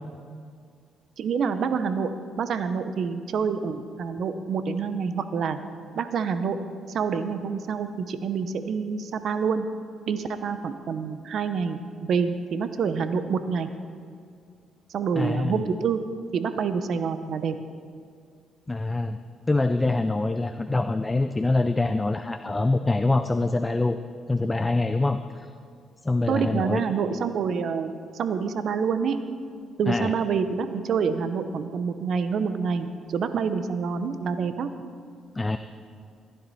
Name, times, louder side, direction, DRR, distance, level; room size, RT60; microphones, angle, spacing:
voice 1, 1.2-2.1 2.4-5.6 6.0-6.6 6.9-9.7 10.1-13.7 14.9-16.0 16.3-17.5 26.3-29.2 29.8-34.7, right 6 dB, 65° right, 10 dB, 0.8 m, -27 dB
voice 2, 15.2-15.6 18.7-19.2 19.5-24.0 24.3-25.5 26.0-26.8 29.9-30.1 35.4-35.6, left 2 dB, 20° left, 9 dB, 0.4 m, -25 dB
15.0 x 10.5 x 4.2 m, 2.2 s
cardioid pair, 90°, 0 cm